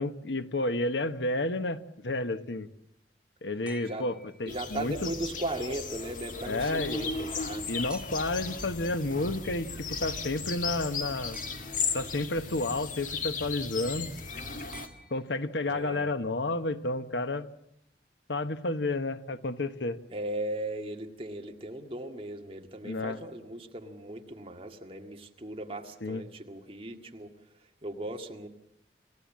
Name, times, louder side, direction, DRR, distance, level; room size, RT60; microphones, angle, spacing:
voice 1, 0.0-2.7 3.4-5.1 6.5-7.0 7.7-11.4 11.9-14.1 15.1-17.5 18.3-20.0 22.8-23.2 26.0-26.2, left 2 dB, 90° left, 11 dB, 1.2 m, -31 dB
sound 1, 3.7-5.0 7.9-8.5 11.3-12.1 14.7-15.8 17.3-17.4, right 1 dB, 5° right, 1.3 m, -51 dB
sound 2, 4.5-14.9, left 5 dB, 45° left, 2.1 m, -36 dB
voice 2, 4.5-7.7 15.7-16.1 20.1-27.3 27.8-28.5, right 1 dB, 30° right, 3 dB, 2.0 m, -37 dB
28.0 x 16.0 x 7.4 m, 0.79 s
head